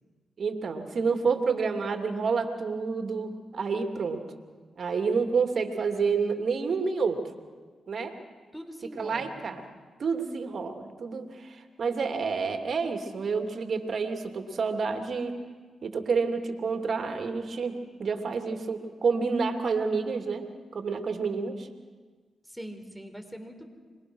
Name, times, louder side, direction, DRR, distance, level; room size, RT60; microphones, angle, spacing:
voice 1, 0.4-4.2 4.8-7.2 7.9-8.1 8.9-9.6 10.0-15.3 15.8-20.4 20.7-21.7, right 5 dB, 60° right, 6 dB, 2.8 m, -29 dB
voice 2, 8.5-9.6 22.5-23.7, equal, 5° left, 6 dB, 4.4 m, -42 dB
26.5 x 21.5 x 6.4 m, 1.5 s
supercardioid pair, 45°, 0 cm